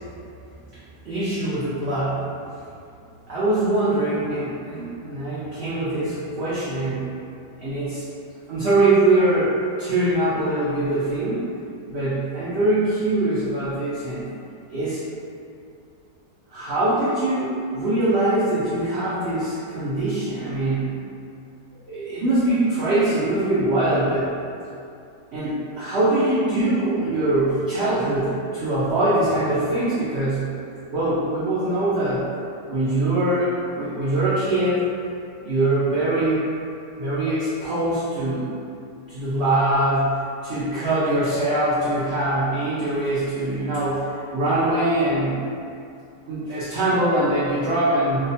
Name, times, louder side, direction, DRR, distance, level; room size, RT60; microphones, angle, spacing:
voice 1, 1.0-2.3 3.3-7.1 7.6-8.1 8.5-9.5 9.8-11.5 11.9-14.3 14.7-15.0 16.5-20.9 21.9-24.3 25.3-30.5 30.9-32.3 32.7-34.8 35.4-36.5 37.0-38.5 39.1-44.1 44.3-45.4 46.3-48.3, right 1 dB, 80° right, -10 dB, 0.5 m, -22 dB
2.7 x 2.1 x 2.6 m, 2.5 s
omnidirectional pair, 1.7 m